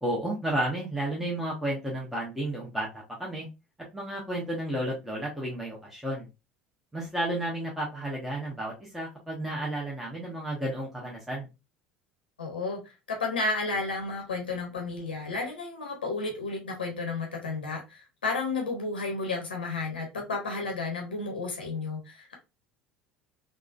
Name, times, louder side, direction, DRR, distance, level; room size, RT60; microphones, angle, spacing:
voice 1, 0.0-3.5 3.9-6.3 6.9-11.5, right 1 dB, 5° right, 0.9 m, -32 dB
voice 2, 12.4-12.8 13.1-22.3, left 3 dB, 80° left, 0.7 m, -32 dB
3.5 x 2.2 x 2.3 m
figure-of-eight pair, 65°, 5 cm